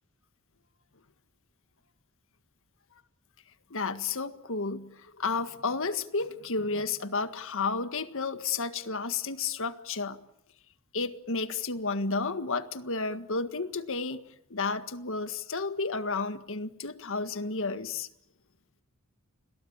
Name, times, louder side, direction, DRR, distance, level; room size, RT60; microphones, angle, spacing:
voice 1, 3.7-10.2 10.9-14.2 14.5-18.1, left 4 dB, 65° left, 10 dB, 1.7 m, -32 dB
29.5 x 22.0 x 8.8 m, 0.77 s
head